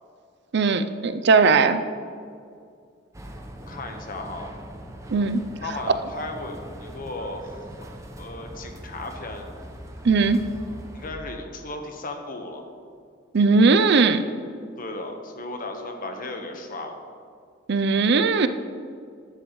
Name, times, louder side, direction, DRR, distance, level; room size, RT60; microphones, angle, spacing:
voice 1, 0.5-1.8 5.1-5.4 10.0-10.4 13.3-14.2 17.7-18.5, right 4 dB, 65° right, 10 dB, 0.5 m, -18 dB
sound 1, 3.1-11.1, equal, 15° right, 0.9 m, -41 dB
voice 2, 3.7-4.5 5.6-7.5 8.2-9.5 10.9-12.6 14.8-17.0, left 2 dB, 50° left, 4 dB, 1.2 m, -35 dB
13.5 x 10.5 x 3.2 m, 2.2 s
head